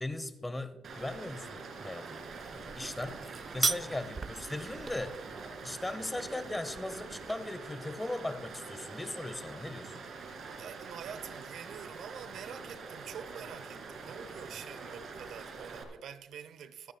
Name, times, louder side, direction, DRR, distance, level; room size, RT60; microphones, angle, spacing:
voice 1, 0.0-2.2 2.5-3.2 3.5-5.2 5.6-10.0, left 2 dB, 15° left, 0.9 m, -38 dB
Stream, 0.8-15.8, right 4 dB, 55° right, 2.4 m, -45 dB
sound 1, 2.3-7.3, right 4 dB, 30° right, 0.3 m, -38 dB
voice 2, 10.6-16.9, right 8 dB, 75° right, 0.7 m, -46 dB
23.5 x 9.3 x 2.3 m
cardioid pair, 90°, 0 cm